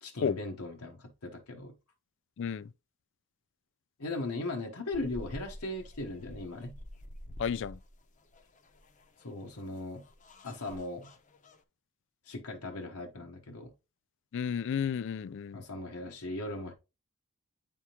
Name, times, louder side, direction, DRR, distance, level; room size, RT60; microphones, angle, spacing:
voice 1, 0.0-1.7 4.0-6.7 9.2-10.0 10.4-11.1 12.3-13.7 15.5-16.7, left 2 dB, 85° left, 1.1 m, -38 dB
voice 2, 2.4-2.7 7.4-7.8 14.3-15.6, left 7 dB, 60° left, 0.3 m, -32 dB
sound 1, 4.9-11.6, left 1 dB, 35° left, 0.7 m, -49 dB
9.3 x 3.5 x 2.9 m
head